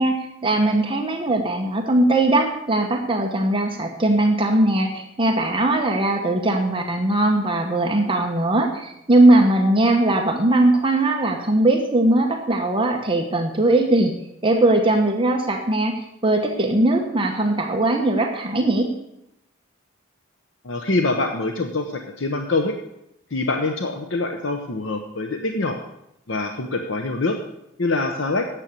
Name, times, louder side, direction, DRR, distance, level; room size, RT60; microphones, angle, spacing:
voice 1, 0.0-14.1 14.4-15.9 16.2-18.9, right 2 dB, 25° right, 2 dB, 1.1 m, -19 dB
voice 2, 20.6-21.9 22.2-22.7 23.3-25.8 26.3-27.4 27.8-28.5, left 3 dB, 60° left, 4 dB, 0.8 m, -24 dB
9.1 x 7.4 x 8.1 m, 0.83 s
head